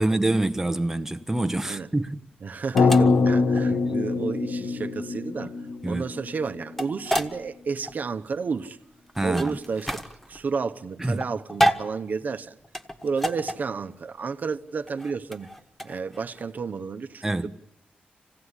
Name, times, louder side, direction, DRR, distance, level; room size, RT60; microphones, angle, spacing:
voice 1, 0.0-2.2 3.7-3.8 5.8-6.0 9.2-9.6 11.0-11.2 17.2-17.5, right 2 dB, 10° right, 0.9 m, -26 dB
sound 1, 1.1-16.5, equal, 5° left, 1.5 m, -31 dB
voice 2, 2.4-8.8 9.2-9.9 10.3-12.6 13.0-15.5 15.8-17.5, right 5 dB, 60° right, 0.9 m, -31 dB
sound 2, 2.7-6.9, left 4 dB, 70° left, 0.8 m, -23 dB
26.5 x 17.0 x 9.8 m
wide cardioid pair, 105°, 3 cm